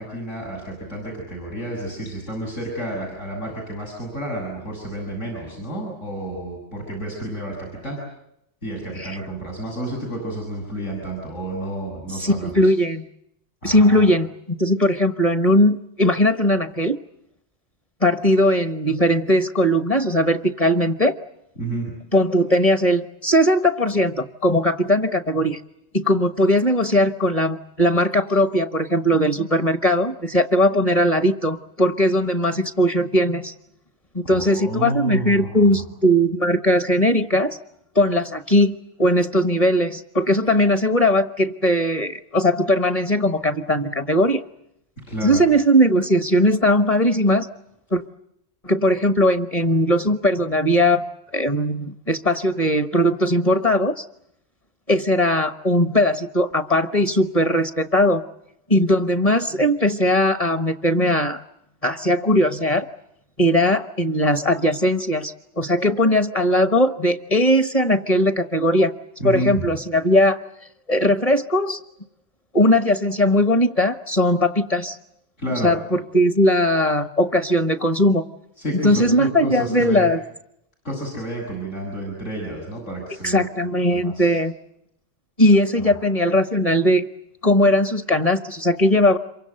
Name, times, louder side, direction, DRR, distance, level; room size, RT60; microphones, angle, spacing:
voice 1, 0.0-8.0 8.6-12.7 13.6-14.1 21.6-21.9 34.2-35.8 45.0-45.4 69.2-69.7 75.4-75.7 78.6-80.1 80.8-83.5 83.9-84.3 85.8-85.9, right 1 dB, 85° left, 0 dB, 7.6 m, -30 dB
voice 2, 12.2-13.0 13.6-17.0 18.0-21.2 22.1-25.6 25.9-33.5 34.1-37.6 37.9-44.4 45.2-47.5 47.9-48.0 48.6-51.0 51.3-54.0 54.9-58.2 58.7-61.4 61.8-62.9 63.4-68.9 69.2-70.4 70.9-71.8 72.5-75.0 75.6-78.2 78.8-80.2 83.2-84.5 85.4-87.1 87.4-89.2, equal, 30° left, 9 dB, 1.2 m, -19 dB
27.5 x 24.0 x 7.8 m, 0.77 s
omnidirectional pair, 1.2 m